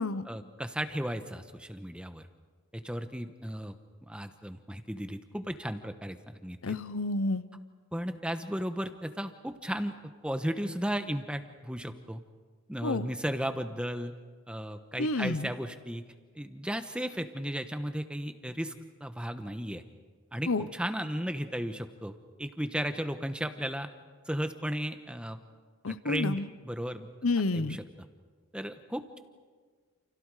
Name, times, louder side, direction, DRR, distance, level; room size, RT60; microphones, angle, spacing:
voice 1, 0.2-2.2 2.7-3.7 4.0-6.8 7.9-9.9 10.2-12.2 12.7-14.1 14.5-16.0 16.3-18.7 19.0-19.8 20.3-23.9 24.3-25.4 25.9-27.1 27.5-27.8 28.5-29.2, equal, 5° right, 8 dB, 1.1 m, -35 dB
voice 2, 6.6-7.4 12.8-13.1 15.0-15.5 20.5-20.6 25.8-26.5 27.2-27.8, left 3 dB, 80° left, 14 dB, 0.9 m, -29 dB
29.5 x 29.0 x 5.0 m, 1.5 s
head